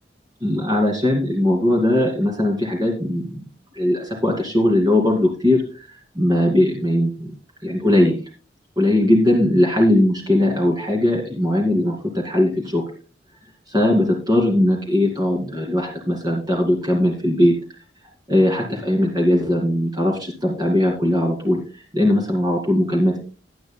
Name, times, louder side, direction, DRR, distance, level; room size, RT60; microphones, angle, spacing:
voice 1, 0.4-3.4 3.8-5.9 6.2-7.3 7.6-8.2 8.8-12.8 13.7-17.5 18.3-21.6 21.9-23.2, left 1 dB, 25° right, 0 dB, 2.4 m, -19 dB
17.5 x 10.5 x 2.2 m, 0.35 s
head